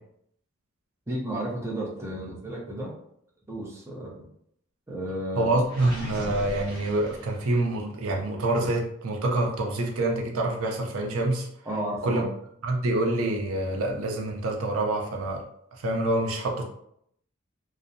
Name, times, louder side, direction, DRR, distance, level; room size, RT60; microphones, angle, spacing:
voice 1, 1.1-2.9 3.5-4.2 4.9-5.5 11.7-12.2, right 1 dB, 15° right, -3 dB, 0.5 m, -32 dB
voice 2, 5.4-11.5 12.0-12.2 12.6-15.4 15.8-16.6, right 2 dB, 70° right, 1 dB, 0.5 m, -26 dB
Gurgling, 5.6-7.8, left 1 dB, 50° right, 0.9 m, -38 dB
2.5 x 2.0 x 2.5 m, 0.70 s
head